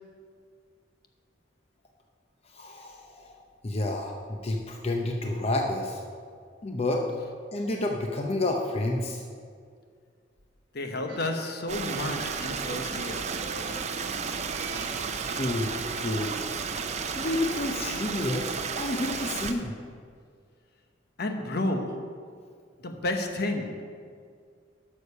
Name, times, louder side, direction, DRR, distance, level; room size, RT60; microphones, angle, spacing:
voice 1, 2.5-4.2 4.4-6.0 6.6-7.0 7.5-9.2 15.3-16.4 17.2-19.7, left 2 dB, 35° left, 2 dB, 0.7 m, -30 dB
voice 2, 10.7-13.3 21.2-22.1 22.8-23.8, left 1 dB, 55° left, 5 dB, 1.0 m, -31 dB
sound 1, 11.1-15.6, right 3 dB, 65° right, 1.1 m, -45 dB
Stream, 11.7-19.5, right 5 dB, 40° right, 0.6 m, -33 dB
11.5 x 6.7 x 5.5 m, 2.1 s
head